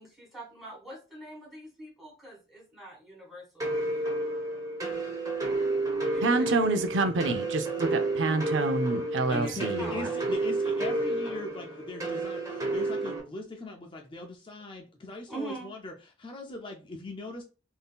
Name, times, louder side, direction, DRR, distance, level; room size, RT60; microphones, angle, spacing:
voice 1, 0.0-4.1 5.9-6.5 9.2-10.3 15.3-15.7, right 2 dB, ahead, 1.6 m, -44 dB
sound 1, 3.6-13.2, right 2 dB, 20° right, 0.9 m, -31 dB
voice 2, 6.2-10.1, right 3 dB, 90° right, 0.5 m, -27 dB
voice 3, 9.3-17.4, left 2 dB, 30° left, 0.4 m, -39 dB
3.5 x 2.7 x 2.3 m
head